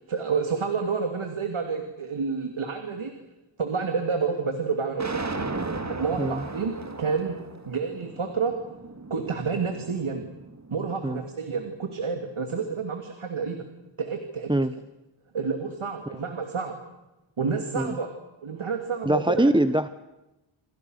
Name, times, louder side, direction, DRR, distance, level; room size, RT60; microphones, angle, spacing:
voice 1, 0.1-3.1 3.6-5.2 5.9-7.4 7.7-8.5 9.1-10.3 10.7-13.6 14.0-14.5 15.3-16.8 17.4-18.1 18.4-19.5, right 5 dB, 75° right, 5 dB, 2.9 m, -29 dB
sound 1, 5.0-11.1, right 3 dB, 35° right, 2.1 m, -36 dB
voice 2, 19.0-19.9, right 1 dB, 10° right, 12 dB, 0.9 m, -23 dB
28.0 x 26.5 x 6.6 m, 0.99 s
wide cardioid pair, 75°, 50 cm